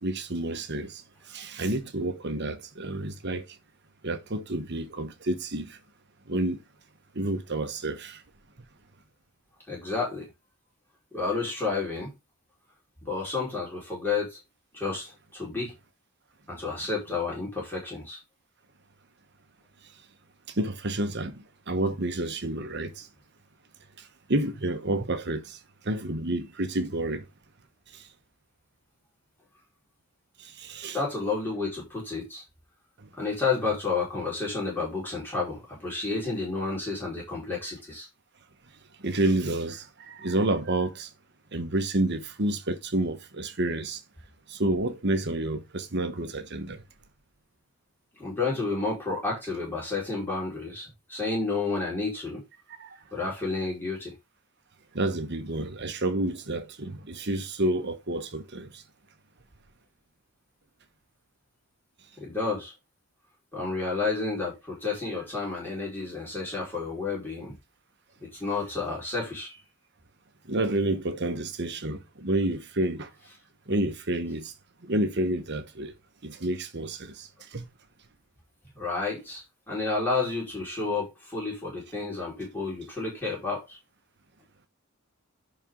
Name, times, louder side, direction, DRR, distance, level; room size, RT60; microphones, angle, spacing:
voice 1, 0.0-1.0 1.3-3.4 4.0-5.8 6.3-6.6 7.1-8.2 20.6-21.3 21.7-23.1 24.3-25.6 25.8-27.2 30.6-31.0 39.0-41.1 41.5-44.0 44.5-46.8 52.8-52.9 54.9-58.7 70.5-73.1 73.7-74.5 74.8-75.9 76.2-77.6, right 1 dB, 50° right, 1.2 m, -29 dB
voice 2, 9.7-10.3 11.1-12.1 13.0-14.4 14.7-15.7 16.5-18.2 30.9-32.4 33.2-38.1 48.2-52.4 53.1-54.2 62.2-62.7 63.5-67.5 68.2-69.6 78.7-83.8, left 4 dB, 10° left, 4.8 m, -31 dB
10.5 x 4.4 x 3.8 m
head